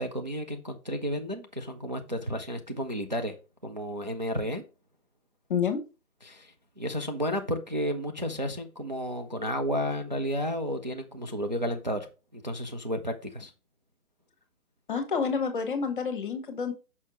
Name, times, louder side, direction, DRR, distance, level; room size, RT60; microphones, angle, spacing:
voice 1, 0.0-3.3 3.6-4.6 6.2-12.1 12.3-13.5, equal, 35° right, 0.4 m, -32 dB
voice 2, 14.9-16.7, left 6 dB, 35° left, 1.1 m, -28 dB
6.4 x 5.5 x 3.0 m
figure-of-eight pair, 135°, 45 cm